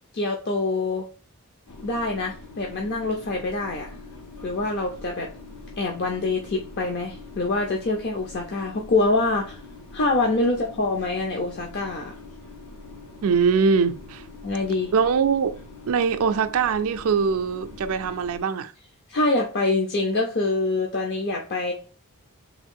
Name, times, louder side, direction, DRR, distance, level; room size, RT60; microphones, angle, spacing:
voice 1, 0.1-1.0 1.8-3.9 4.4-5.3 5.8-9.6 9.9-12.1 14.4-14.9 19.1-21.7, left 2 dB, 50° left, 0.5 m, -25 dB
sound 1, 1.7-18.4, left 3 dB, 90° left, 0.9 m, -43 dB
voice 2, 13.2-14.2 14.9-15.5 15.9-18.7, right 5 dB, 70° right, 0.4 m, -22 dB
3.5 x 2.5 x 3.6 m
head